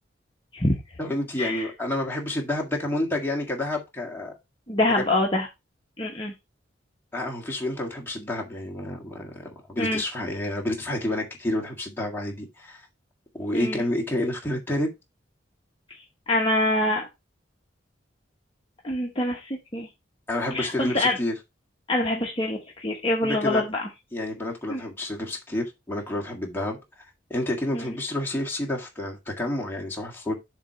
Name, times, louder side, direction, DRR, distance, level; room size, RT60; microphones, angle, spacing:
voice 1, 1.0-4.3 5.0-5.1 7.1-12.8 13.4-14.9 20.3-21.3 23.2-23.6 24.1-26.8 27.3-30.3, left 1 dB, 10° left, 1.7 m, -29 dB
voice 2, 4.7-5.5 6.0-6.3 9.8-10.0 13.5-13.8 16.3-17.1 18.8-19.9 20.5-21.2 21.9-23.9 24.7-24.8 27.7-27.8, left 1 dB, 25° left, 1.1 m, -25 dB
7.3 x 3.1 x 5.7 m
head